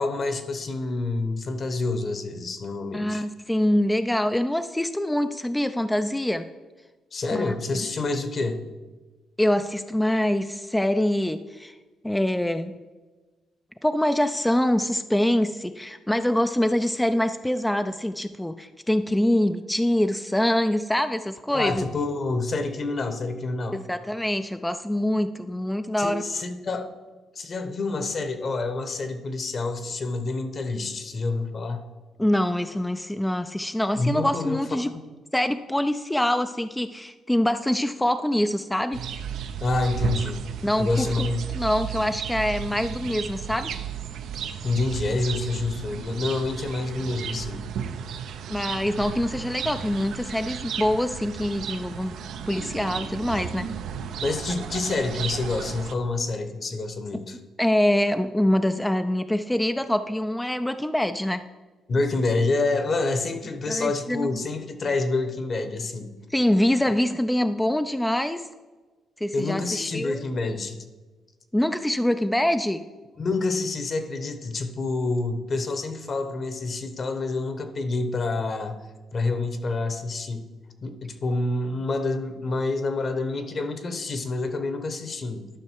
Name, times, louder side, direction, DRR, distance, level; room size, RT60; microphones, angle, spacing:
voice 1, 0.0-3.2 7.1-8.6 21.5-23.8 26.0-26.9 27.3-31.9 33.9-34.6 39.6-40.4 40.8-41.5 44.6-47.7 54.2-57.4 61.9-66.1 66.9-67.0 69.3-70.8 73.2-78.7 79.1-80.5 80.8-85.5, left 3 dB, 45° left, 8 dB, 1.1 m, -27 dB
voice 2, 2.9-6.4 7.3-7.5 9.4-11.7 12.0-12.8 13.8-21.8 23.7-26.2 32.2-34.9 35.3-39.0 40.6-41.3 41.5-43.7 48.5-52.2 52.5-53.7 57.6-61.4 63.7-64.4 66.3-68.5 69.2-70.2 71.5-72.8, left 1 dB, 5° left, 9 dB, 0.4 m, -24 dB
sound 1, 38.9-55.9, right 8 dB, 75° right, 0.6 m, -34 dB
11.5 x 5.6 x 4.6 m, 1.2 s
cardioid pair, 90°, 0 cm